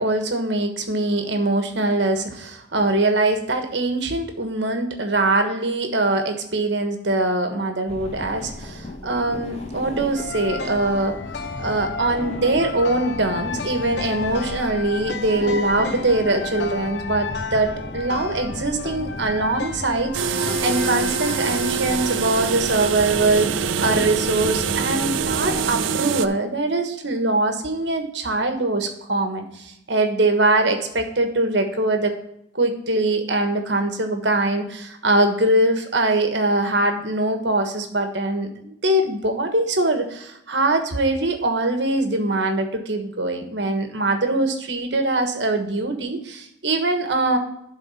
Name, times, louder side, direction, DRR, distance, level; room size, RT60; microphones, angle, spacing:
voice 1, 0.0-11.2 11.6-32.1 32.5-47.4, right 2 dB, 65° right, 6 dB, 1.3 m, -22 dB
sound 1, 7.9-25.8, left 1 dB, 35° left, 1.1 m, -36 dB
sound 2, 10.1-22.5, left 4 dB, 60° left, 0.6 m, -33 dB
sound 3, 20.1-26.3, right 6 dB, 85° right, 0.5 m, -24 dB
11.5 x 3.9 x 5.6 m, 0.77 s
head